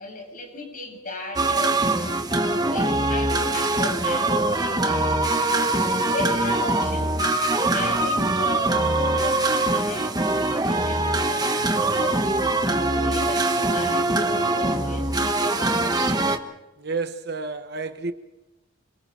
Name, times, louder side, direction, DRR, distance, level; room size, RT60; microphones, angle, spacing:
voice 1, 0.0-5.1 5.9-7.2 7.5-12.2 12.7-16.3, left 2 dB, 40° left, 7.6 m, -36 dB
sound 1, 1.4-16.4, right 2 dB, 20° right, 1.2 m, -23 dB
voice 2, 16.8-18.1, right 4 dB, 50° right, 1.1 m, -30 dB
27.0 x 24.0 x 4.5 m
head